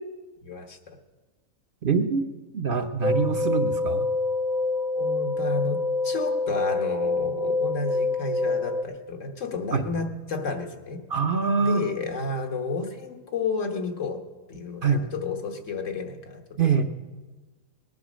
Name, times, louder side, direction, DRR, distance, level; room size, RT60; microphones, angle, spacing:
voice 1, 0.4-1.0 3.4-3.6 4.9-11.0 11.6-14.2 14.5-16.4 16.7-16.8, left 4 dB, 70° left, 4 dB, 1.6 m, -31 dB
voice 2, 1.8-2.2 2.5-4.1 9.7-9.8 11.1-11.9 14.8-15.1 16.6-16.8, right 5 dB, 50° right, 6 dB, 0.8 m, -24 dB
sound 1, 3.0-8.8, left 3 dB, 40° left, 0.8 m, -26 dB
19.5 x 9.5 x 6.2 m, 1.2 s
omnidirectional pair, 1.4 m